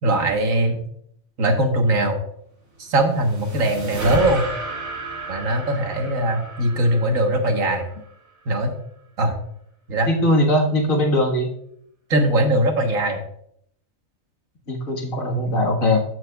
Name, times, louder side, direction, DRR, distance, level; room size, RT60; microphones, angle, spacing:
voice 1, 0.0-0.8 1.4-2.2 2.8-4.4 5.3-7.9 8.5-8.7 9.2-9.3 9.9-10.1 12.1-13.2, right 1 dB, 75° right, 3 dB, 1.7 m, -20 dB
sound 1, 2.7-8.1, right 2 dB, 55° right, 2.4 m, -33 dB
voice 2, 10.1-11.5 14.7-16.0, left 1 dB, 75° left, 0 dB, 2.0 m, -20 dB
14.5 x 6.1 x 2.3 m, 0.69 s
omnidirectional pair, 1.4 m